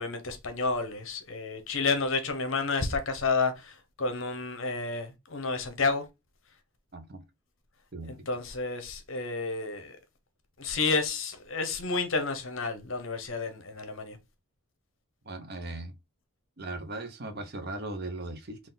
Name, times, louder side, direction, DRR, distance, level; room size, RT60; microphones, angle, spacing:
voice 1, 0.0-6.0 8.1-10.0 10.6-14.2, left 4 dB, 60° left, 0.8 m, -30 dB
voice 2, 6.9-7.2 7.9-8.1 15.2-15.9 16.6-18.7, right 2 dB, 45° right, 0.7 m, -38 dB
3.7 x 2.4 x 3.8 m
head